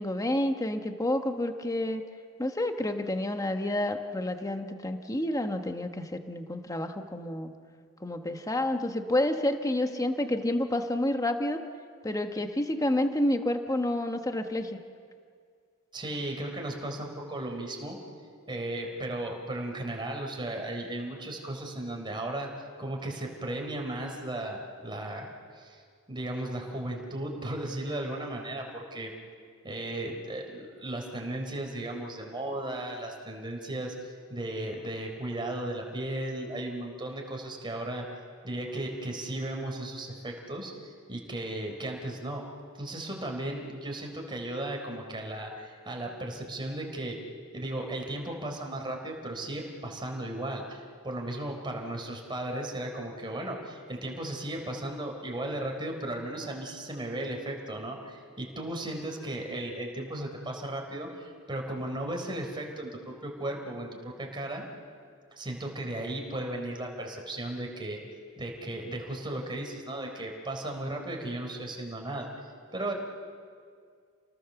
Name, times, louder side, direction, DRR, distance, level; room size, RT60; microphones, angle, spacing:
voice 1, 0.0-2.0 2.4-7.5 8.0-11.6 12.0-14.8, left 1 dB, 15° left, 6 dB, 1.2 m, -29 dB
voice 2, 15.9-18.0 18.5-22.5 22.8-25.8 26.1-29.1 29.6-38.2 38.4-42.4 42.8-47.2 47.5-64.7 65.3-68.0 68.4-72.3 72.7-72.9, right 1 dB, 20° right, 1 dB, 3.8 m, -35 dB
29.5 x 19.5 x 7.0 m, 2.1 s
head